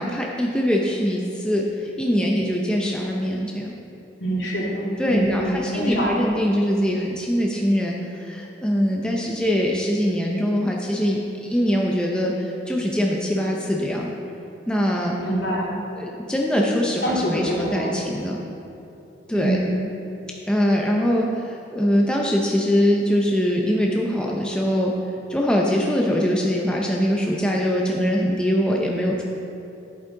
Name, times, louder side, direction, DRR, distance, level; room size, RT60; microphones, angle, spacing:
voice 1, 0.0-1.7 2.0-3.7 5.0-14.1 14.7-15.2 16.0-18.4 19.3-19.6 20.5-24.9 25.3-29.2, equal, 5° left, -2 dB, 0.5 m, -22 dB
voice 2, 4.2-6.3 15.2-15.7 17.0-18.0 19.3-19.8, right 1 dB, 65° left, -4 dB, 2.1 m, -25 dB
11.0 x 8.2 x 3.8 m, 2.8 s
head